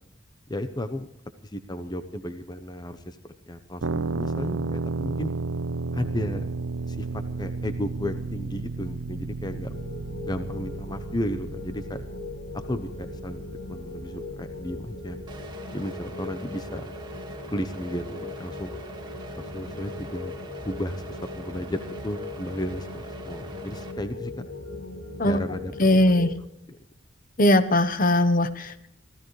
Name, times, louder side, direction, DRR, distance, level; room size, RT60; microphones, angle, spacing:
voice 1, 0.5-1.1 1.4-5.3 5.9-6.5 6.9-9.8 10.2-12.0 12.5-13.4 13.7-15.2 15.7-16.9 17.5-18.7 19.4-20.3 20.6-24.5 25.2-26.3 26.7-26.8, left 1 dB, 20° left, 9 dB, 0.8 m, -34 dB
sound 1, 3.8-15.4, right 3 dB, 85° right, 0.8 m, -33 dB
sound 2, 9.7-26.3, left 2 dB, 60° left, 2.3 m, -39 dB
sound 3, 15.3-23.9, right 2 dB, 20° right, 2.1 m, -44 dB
voice 2, 25.8-26.3 27.4-28.9, left 1 dB, 45° left, 12 dB, 1.0 m, -20 dB
24.5 x 15.5 x 3.2 m, 0.72 s
head